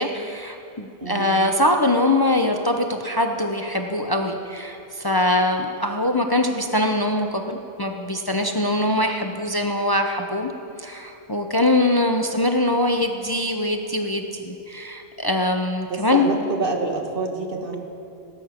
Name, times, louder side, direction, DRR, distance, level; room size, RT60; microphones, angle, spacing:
voice 1, 0.0-10.5 10.8-16.4, left 1 dB, 25° left, 4 dB, 0.7 m, -23 dB
voice 2, 1.0-1.4 15.9-17.8, right 3 dB, 60° right, 2 dB, 1.6 m, -27 dB
18.5 x 8.9 x 5.9 m, 2.8 s
omnidirectional pair, 1.0 m